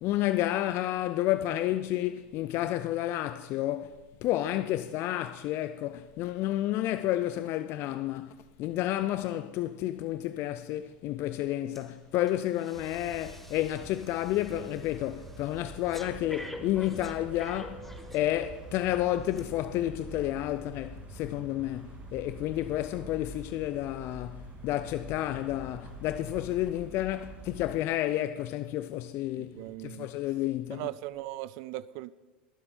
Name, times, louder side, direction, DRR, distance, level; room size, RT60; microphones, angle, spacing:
voice 1, 0.0-30.8, left 14 dB, 45° left, 0.5 m, -31 dB
Breathing, 11.7-11.9 12.3-18.7 19.3-19.4, left 1 dB, 5° left, 1.5 m, -47 dB
sound 1, 12.7-27.8, right 1 dB, 25° right, 2.1 m, -46 dB
voice 2, 29.4-30.1 30.7-32.1, right 16 dB, 55° right, 0.4 m, -39 dB
21.0 x 7.6 x 4.3 m
hypercardioid pair, 85°, 6 cm